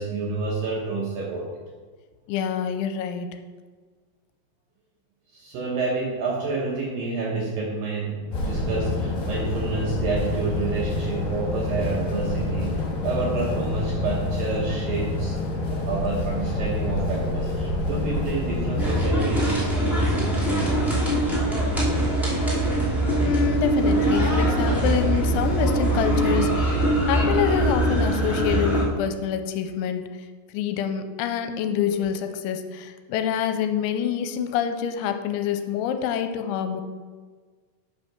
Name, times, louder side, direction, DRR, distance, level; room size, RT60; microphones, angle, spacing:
voice 1, 0.0-1.5 5.3-15.4 15.6-21.0, right 3 dB, 70° right, -3 dB, 2.2 m, -29 dB
voice 2, 2.3-3.4 23.2-30.0 30.5-36.8, left 8 dB, 85° left, 8 dB, 3.0 m, -26 dB
sound 1, 8.3-19.0, left 2 dB, 60° left, 3.5 m, -27 dB
sound 2, 18.8-28.8, right 1 dB, ahead, 0.6 m, -22 dB
8.2 x 6.3 x 5.9 m, 1.5 s
omnidirectional pair, 5.4 m